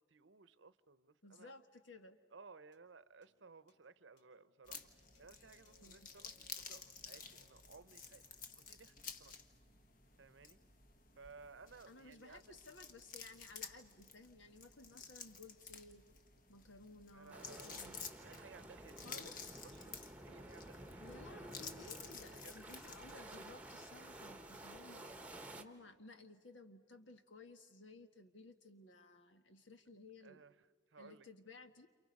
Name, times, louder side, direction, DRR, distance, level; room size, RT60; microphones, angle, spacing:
voice 1, 0.0-1.5 2.3-4.9 5.2-9.3 10.2-10.6 11.1-12.6 17.1-17.7 18.2-21.1 22.3-22.6 30.2-31.3, right 4 dB, 75° right, 16 dB, 0.8 m, -60 dB
voice 2, 1.2-2.2 5.7-6.1 11.9-16.1 16.5-18.1 19.0-19.6 21.0-25.1 25.6-30.4 31.0-31.9, left 2 dB, 80° left, 7 dB, 1.6 m, -57 dB
sound 1, 2.7-9.3, left 5 dB, 60° left, 2.6 m, -75 dB
sound 2, 4.7-23.4, left 5 dB, 45° left, 1.3 m, -53 dB
sound 3, 17.3-25.6, right 1 dB, 5° right, 1.1 m, -52 dB
29.0 x 28.5 x 5.4 m, 1.5 s
head